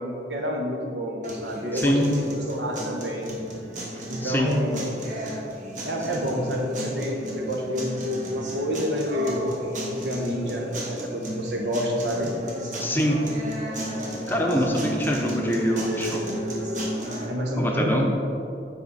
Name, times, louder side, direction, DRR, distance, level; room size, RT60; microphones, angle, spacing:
voice 1, 0.0-3.4 4.1-4.9 5.8-9.5 9.9-12.3 17.3-18.2, equal, 85° right, 0 dB, 1.2 m, -28 dB
sound 1, 1.2-17.2, right 1 dB, 45° right, 1.2 m, -33 dB
voice 2, 12.8-13.2 14.3-16.2 17.6-18.1, equal, 10° left, 0 dB, 0.7 m, -24 dB
9.6 x 4.2 x 4.1 m, 2.7 s
head